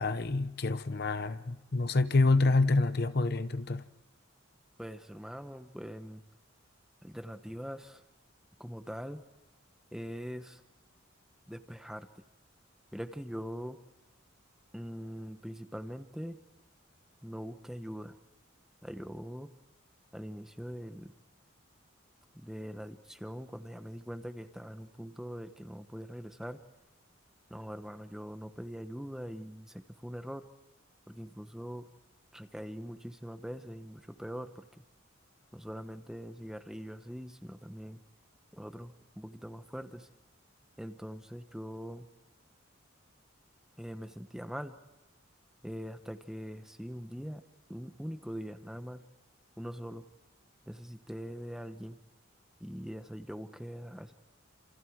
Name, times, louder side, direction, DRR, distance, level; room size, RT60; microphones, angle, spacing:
voice 1, 0.0-3.9, left 3 dB, 50° left, 0.8 m, -27 dB
voice 2, 4.8-6.2 7.0-8.0 8.6-9.2 9.9-10.6 11.5-12.2 12.9-13.8 14.7-16.4 17.2-18.1 18.8-19.5 20.1-21.1 22.3-26.6 27.5-30.5 31.1-31.9 32.3-34.8 35.5-38.0 38.5-40.1 40.8-42.1 43.8-44.7 45.6-47.4 47.7-49.0 49.6-50.0 50.7-52.0 52.6-54.1, equal, 5° right, 1.0 m, -42 dB
29.5 x 27.5 x 4.7 m
head